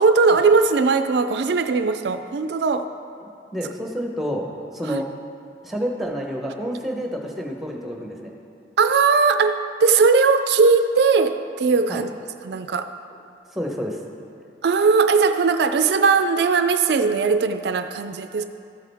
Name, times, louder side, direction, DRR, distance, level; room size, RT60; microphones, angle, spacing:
voice 1, 0.0-2.9 4.9-5.0 8.8-12.1 12.4-12.9 14.6-18.4, right 4 dB, 65° right, 9 dB, 0.4 m, -19 dB
voice 2, 3.2-4.5 4.7-5.1 5.6-8.3 11.9-12.1 13.5-14.0, equal, ahead, 0 dB, 0.9 m, -29 dB
13.0 x 8.2 x 3.5 m, 2.5 s
head